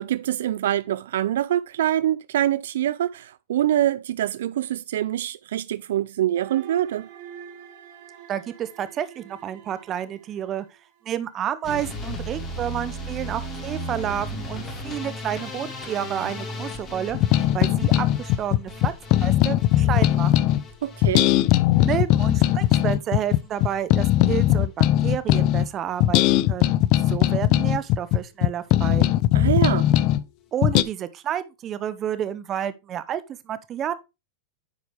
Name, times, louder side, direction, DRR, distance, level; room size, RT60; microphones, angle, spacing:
voice 1, 0.0-7.1 20.8-21.3 29.3-29.9, right 12 dB, 75° right, 0.3 m, -25 dB
sound 1, 6.4-11.1 12.0-17.3, right 9 dB, 60° right, 1.4 m, -46 dB
voice 2, 8.3-10.7 11.0-17.2 17.5-20.6 21.8-26.2 26.5-26.7 27.1-29.1 30.5-33.9, right 10 dB, 30° right, 0.9 m, -30 dB
sound 2, 11.6-23.8 24.1-24.7 25.0-25.6 25.9-26.1 26.4-26.5 26.8-26.9, left 1 dB, 25° left, 2.6 m, -37 dB
sound 3, 17.1-20.6 21.0-25.7 26.0-30.2 30.6-30.8, left 14 dB, 45° left, 0.5 m, -19 dB
9.7 x 4.7 x 3.4 m
hypercardioid pair, 125°, 0 cm